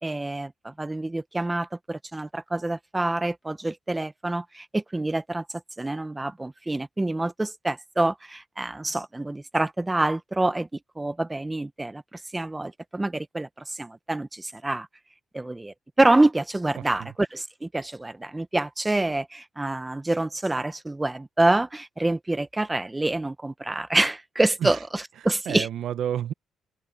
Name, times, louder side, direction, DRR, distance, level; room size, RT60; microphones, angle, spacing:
voice 1, 0.0-5.4 5.8-10.7 11.0-14.9 15.3-25.7, right 2 dB, 15° right, 0.9 m, -26 dB
voice 2, 16.8-17.1 24.6-24.8 25.2-26.3, right 10 dB, 70° right, 0.6 m, -31 dB
open air
cardioid pair, 90°, 0 cm